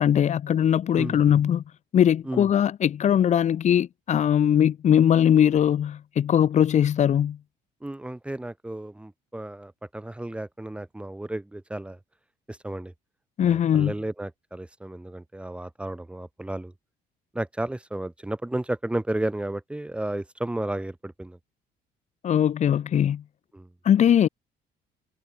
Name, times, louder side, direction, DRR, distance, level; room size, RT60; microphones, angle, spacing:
voice 1, 0.0-1.6 1.9-7.4 13.4-13.9 22.2-23.2 23.8-24.3, left 9 dB, 40° left, 2.7 m, -20 dB
voice 2, 7.8-12.0 12.5-12.9 13.4-16.7 17.3-21.4 23.5-23.7, right 1 dB, 5° right, 2.6 m, -33 dB
cardioid pair, 165°, 18 cm